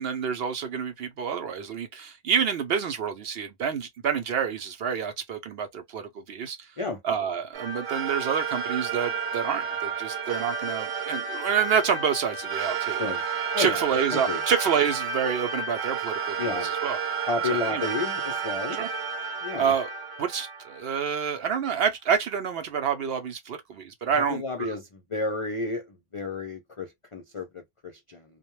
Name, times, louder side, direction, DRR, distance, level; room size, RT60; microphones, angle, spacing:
voice 1, 0.0-6.6 7.0-13.0 13.6-17.0 17.4-17.9 18.7-18.9 19.6-19.9 20.2-24.7, right 7 dB, 65° right, 0.7 m, -28 dB
sound 1, 7.5-21.3, right 6 dB, 80° right, 1.0 m, -31 dB
voice 2, 12.9-13.2 13.5-13.8 14.1-14.4 16.4-16.7 17.3-18.8 19.4-19.7 24.1-28.2, left 3 dB, 55° left, 0.3 m, -32 dB
2.2 x 2.0 x 3.0 m
omnidirectional pair, 1.3 m